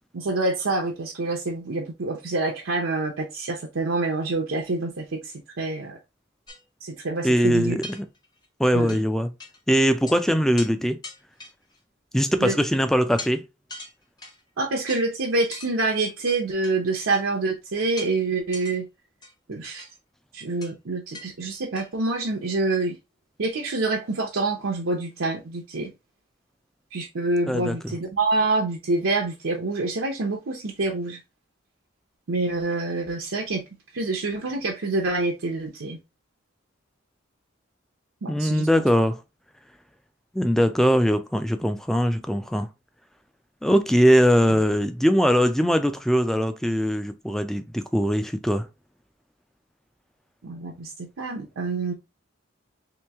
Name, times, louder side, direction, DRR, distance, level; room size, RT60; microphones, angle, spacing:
voice 1, 0.1-5.2 5.6-6.0 6.8-7.8 8.7-9.0 12.4-12.5 14.6-18.8 19.5-19.9 20.3-23.0 23.4-25.9 26.9-31.2 32.3-33.6 33.9-36.0 38.2-38.7 50.4-51.9, right 3 dB, 85° right, 0.7 m, -26 dB
sound 1, 6.5-6.6 7.2-7.3 7.8-8.5 8.9-9.0 9.4-9.6 9.8-10.2 10.6-10.7 11.0-11.8 12.4-12.7 13.2-13.3 13.7-14.4 14.9-15.0 15.5-15.7 16.3-16.7 17.1-17.3 18.0-18.1 18.5-18.8 19.2-19.9 20.6-20.7 21.1-21.3 21.5-21.9, left 2 dB, 20° left, 0.8 m, -40 dB
voice 2, 7.2-8.1 8.6-9.3 9.7-11.0 12.1-13.5 27.5-28.0 38.3-39.2 40.3-42.7 43.6-48.7, equal, ahead, 0.3 m, -21 dB
3.1 x 3.0 x 3.4 m
head